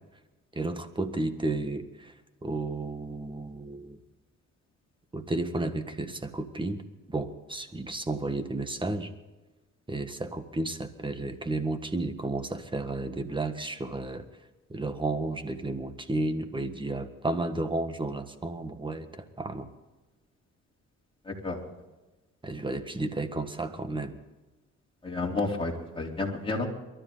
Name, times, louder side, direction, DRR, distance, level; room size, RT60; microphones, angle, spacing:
voice 1, 0.5-2.1 2.4-4.0 5.1-6.8 7.1-9.1 9.9-14.3 14.7-19.7 22.4-24.2, right 2 dB, 15° right, 9 dB, 1.6 m, -32 dB
voice 2, 21.2-21.6 25.0-26.7, left 3 dB, 15° left, -2 dB, 3.8 m, -31 dB
23.0 x 13.0 x 4.0 m, 1.1 s
cardioid pair, 90°, 30 cm